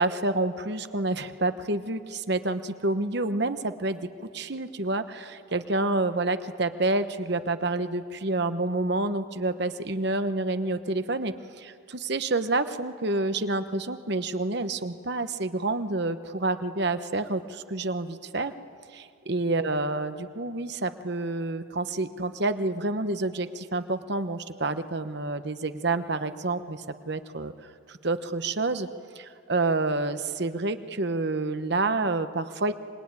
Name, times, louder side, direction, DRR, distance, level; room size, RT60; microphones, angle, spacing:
voice 1, 0.0-4.0 4.3-18.5 18.9-27.5 27.9-28.9 29.1-32.7, right 2 dB, 55° right, 10 dB, 1.0 m, -28 dB
25.5 x 21.5 x 9.7 m, 2.4 s
head